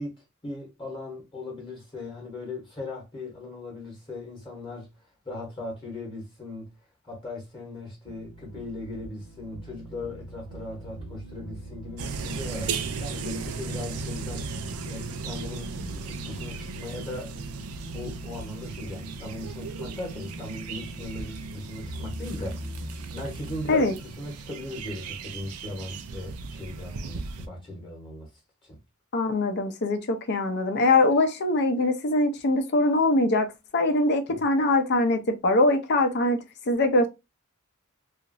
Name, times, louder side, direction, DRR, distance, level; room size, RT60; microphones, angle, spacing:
voice 1, 0.0-6.7 7.0-17.3 17.9-28.3 28.6-28.8 34.3-34.4, left 2 dB, 25° left, 0.9 m, -38 dB
sound 1, 8.0-23.8, right 1 dB, 65° right, 0.8 m, -42 dB
sound 2, 12.0-27.5, right 4 dB, 85° right, 0.4 m, -37 dB
voice 2, 29.1-37.1, left 2 dB, 50° left, 0.5 m, -23 dB
2.9 x 2.4 x 2.5 m
head